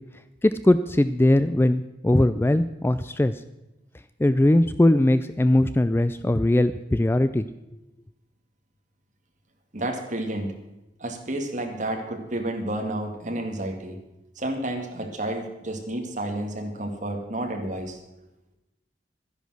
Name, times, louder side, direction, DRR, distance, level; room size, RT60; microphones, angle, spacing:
voice 1, 0.4-3.4 4.2-7.5, left 1 dB, 15° left, 12 dB, 0.4 m, -20 dB
voice 2, 9.7-10.5 11.0-14.0 14.4-18.0, right 1 dB, 45° right, 3 dB, 2.1 m, -30 dB
12.5 x 10.5 x 6.3 m, 0.97 s
head